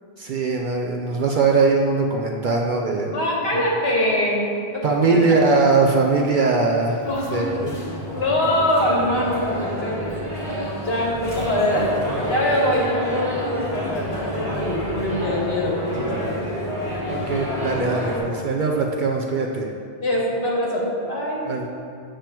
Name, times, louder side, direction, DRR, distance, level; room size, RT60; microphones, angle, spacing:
voice 1, 0.2-3.2 3.5-3.6 4.8-7.7 17.1-19.7 21.5-21.7, right 3 dB, 60° right, 0 dB, 0.6 m, -21 dB
voice 2, 3.1-5.3 7.0-7.5 8.1-10.4 10.8-11.9 12.3-16.4 20.0-21.4, left 1 dB, 65° left, -3 dB, 1.5 m, -23 dB
sound 1, 7.0-18.2, equal, 30° left, 1.9 m, -29 dB
7.6 x 6.7 x 2.9 m, 2.3 s
omnidirectional pair, 1.1 m